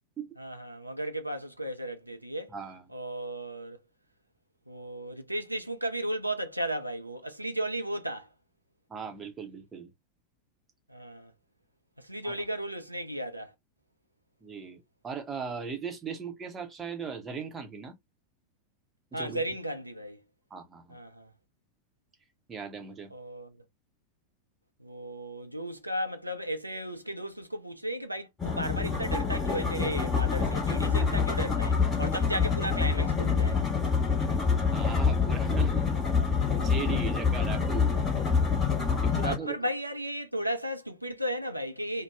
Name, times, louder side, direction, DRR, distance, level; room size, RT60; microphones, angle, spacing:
voice 1, 0.4-2.5 2.9-3.8 4.7-8.3 10.9-11.3 12.0-13.5 19.1-20.2 20.9-21.3 23.1-23.6 24.8-33.6 39.2-42.0, right 1 dB, 85° right, 0.5 m, -35 dB
voice 2, 2.5-2.8 8.9-9.9 12.2-12.5 14.4-17.9 19.1-19.4 20.5-21.0 22.5-23.1 30.8-31.2 34.7-35.9 36.2-38.0 39.0-39.6, right 6 dB, 20° right, 0.8 m, -38 dB
sound 1, 28.4-39.4, left 5 dB, 20° left, 1.2 m, -26 dB
2.6 x 2.2 x 3.2 m
figure-of-eight pair, 90°, 0 cm